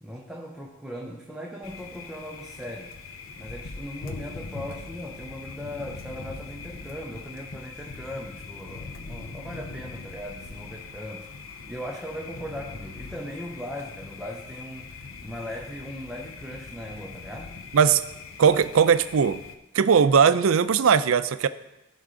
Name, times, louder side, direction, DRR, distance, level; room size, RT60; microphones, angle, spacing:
voice 1, 0.0-3.0 3.4-11.3 11.7-17.6, equal, 5° right, -1 dB, 0.7 m, -38 dB
Thunder, 1.6-19.6, left 4 dB, 80° left, 0.7 m, -41 dB
voice 2, 18.4-19.4 19.7-21.5, right 6 dB, 80° right, 13 dB, 0.4 m, -19 dB
14.5 x 5.8 x 3.8 m, 0.96 s
head